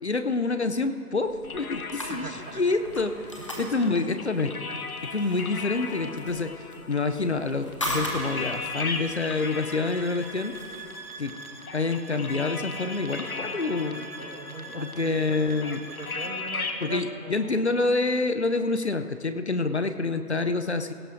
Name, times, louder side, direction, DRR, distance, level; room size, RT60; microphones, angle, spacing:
voice 1, 0.0-2.3 2.6-3.3 3.6-4.5 5.0-6.5 6.9-10.5 11.2-11.3 11.7-14.0 14.7-15.8 16.8-20.9, left 3 dB, 45° left, 9 dB, 0.5 m, -27 dB
sound 1, 1.2-11.0, equal, 20° left, 0.8 m, -39 dB
sound 2, 1.4-16.9, left 4 dB, 65° left, 1.2 m, -38 dB
voice 2, 2.1-2.6 3.4-4.1 13.9-15.4 15.9-17.7, right 4 dB, 80° right, 5 dB, 1.5 m, -41 dB
sound 3, 7.9-16.4, right 3 dB, 40° right, 0.9 m, -43 dB
17.5 x 17.0 x 2.6 m, 2.5 s
figure-of-eight pair, 160°, 46 cm